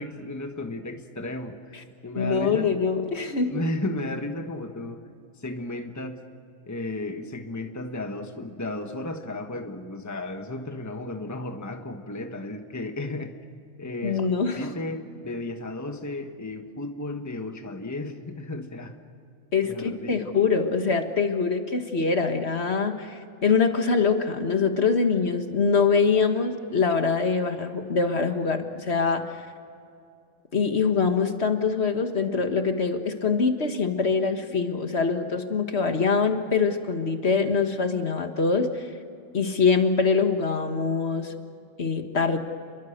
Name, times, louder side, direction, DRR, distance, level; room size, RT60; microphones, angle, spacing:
voice 1, 0.0-1.6 2.0-2.7 3.5-5.1 5.4-6.2 6.7-13.4 13.8-14.3 14.5-19.0 19.6-20.2, left 2 dB, 15° left, 5 dB, 1.3 m, -34 dB
voice 2, 2.1-3.6 14.0-14.7 19.5-29.2 30.5-38.9 39.3-41.3 41.8-42.4, left 5 dB, 55° left, 6 dB, 1.8 m, -24 dB
29.0 x 23.0 x 6.7 m, 2.4 s
omnidirectional pair, 1.3 m